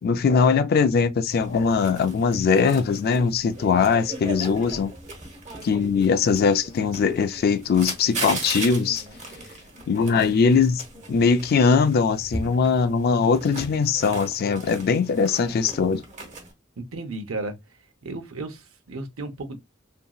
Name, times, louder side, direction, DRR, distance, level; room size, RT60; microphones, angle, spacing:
voice 1, 0.0-4.9 5.6-9.0 9.9-10.8 11.1-16.0, left 5 dB, 50° left, 0.3 m, -21 dB
sound 1, 1.3-16.5, right 2 dB, 35° right, 0.8 m, -38 dB
voice 2, 16.8-17.6 18.0-19.6, right 2 dB, 80° right, 0.7 m, -34 dB
2.9 x 2.6 x 2.3 m
head